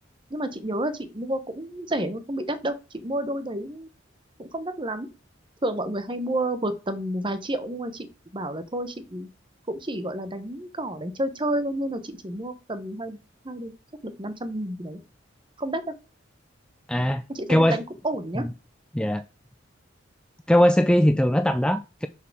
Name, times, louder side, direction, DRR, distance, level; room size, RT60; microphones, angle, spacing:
voice 1, 0.3-3.9 4.4-5.1 5.6-8.1 8.3-9.3 9.7-13.2 13.4-13.7 14.0-15.0 15.6-15.9 17.3-18.5, right 1 dB, 25° right, 1.0 m, -30 dB
voice 2, 16.9-17.2 17.5-17.8 18.4-18.5 18.9-19.2 20.5-22.1, equal, 5° left, 0.3 m, -20 dB
6.7 x 4.8 x 6.1 m
head